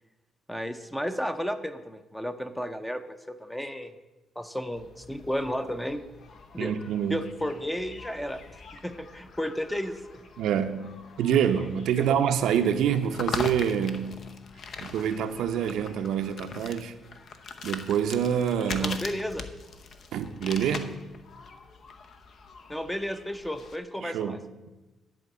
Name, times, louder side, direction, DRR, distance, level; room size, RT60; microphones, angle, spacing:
voice 1, 0.5-3.9 4.4-6.0 6.5-6.7 7.1-8.6 8.8-10.2 12.0-12.1 18.8-19.5 22.7-24.4, equal, 5° left, 0.6 m, -33 dB
sound 1, 4.8-23.8, left 4 dB, 55° left, 0.8 m, -42 dB
voice 2, 6.6-7.2 10.4-14.2 14.8-16.9 17.6-19.0 20.1-20.9 24.0-24.7, right 8 dB, 80° right, 0.6 m, -26 dB
11.0 x 4.5 x 7.5 m
cardioid pair, 110°, 0 cm